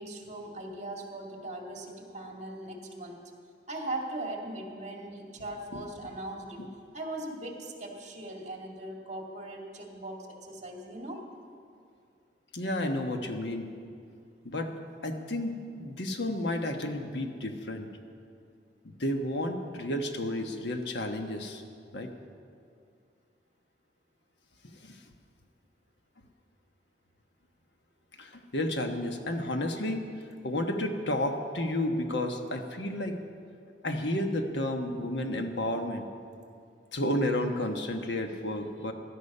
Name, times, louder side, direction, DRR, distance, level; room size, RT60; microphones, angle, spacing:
voice 1, 0.0-3.2 3.7-6.6 6.9-11.2, right 1 dB, 40° right, 1 dB, 2.1 m, -39 dB
voice 2, 12.5-13.7 14.4-14.7 15.0-17.9 19.0-21.6 21.9-22.1 24.8-25.0 28.2-30.0 30.4-33.2 33.8-36.1 36.9-38.9, left 1 dB, 70° left, 5 dB, 1.2 m, -31 dB
16.5 x 12.5 x 5.5 m, 2.4 s
head